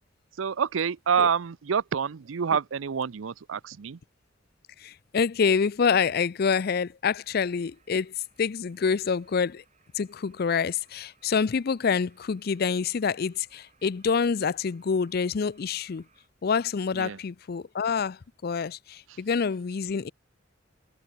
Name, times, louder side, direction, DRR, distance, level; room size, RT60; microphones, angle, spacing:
voice 1, 0.4-4.0 16.9-17.2, right 7 dB, 85° right, 0.5 m, -27 dB
voice 2, 4.8-9.6 9.9-16.1 16.4-20.1, left 6 dB, 50° left, 0.4 m, -27 dB
sound 1, 7.2-16.3, right 5 dB, 35° right, 6.6 m, -66 dB
head